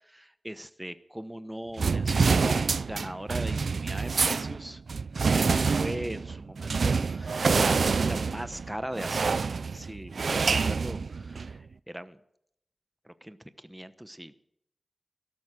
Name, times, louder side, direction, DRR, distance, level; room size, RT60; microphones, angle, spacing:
voice 1, 0.1-4.8 5.3-9.5 9.7-12.2 13.0-14.4, equal, 10° right, 12 dB, 1.0 m, -39 dB
sound 1, 1.8-11.6, right 4 dB, 80° right, 0.4 m, -27 dB
12.5 x 12.5 x 6.6 m, 0.74 s
wide cardioid pair, 65°, 0 cm